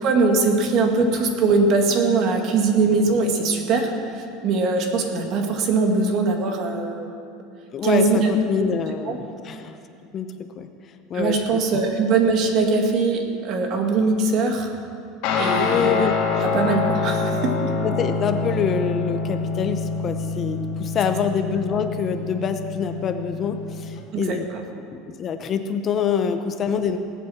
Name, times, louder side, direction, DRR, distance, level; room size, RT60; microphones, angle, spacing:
voice 1, 0.0-7.1 7.8-8.3 9.0-9.2 11.1-14.7 15.4-16.0 16.4-17.6 24.1-24.4, right 4 dB, 45° right, 3 dB, 1.8 m, -21 dB
voice 2, 7.7-9.8 10.1-10.7 11.1-11.4 11.7-11.8 15.6-16.2 17.8-24.5 24.9-27.0, left 7 dB, 30° left, 8 dB, 0.7 m, -26 dB
Guitar, 15.2-24.0, left 4 dB, 60° left, 2.3 m, -26 dB
18.0 x 8.5 x 7.1 m, 2.6 s
supercardioid pair, 155°, 0 cm